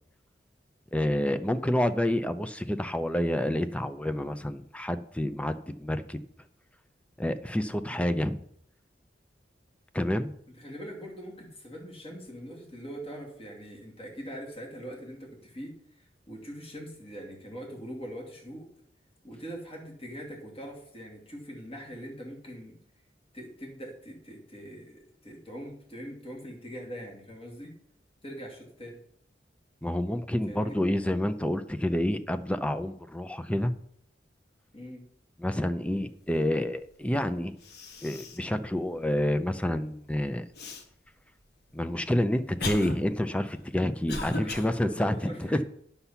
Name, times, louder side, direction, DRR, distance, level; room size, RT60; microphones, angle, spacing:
voice 1, 0.9-6.2 7.2-8.4 9.9-10.3 29.8-33.7 35.4-37.5 38.0-40.4 41.7-45.1 45.4-45.6, left 1 dB, 5° left, 11 dB, 0.6 m, -28 dB
voice 2, 10.6-18.7 19.2-22.8 23.3-27.7 28.2-29.0 30.5-30.8 34.7-35.0 44.0-45.6, equal, 35° left, 0 dB, 2.6 m, -42 dB
Cough, 37.2-37.3 37.6-38.5 39.0-39.1 40.6-40.8 41.6-44.7, left 3 dB, 70° left, 1.3 m, -38 dB
9.9 x 7.0 x 5.7 m, 0.68 s
head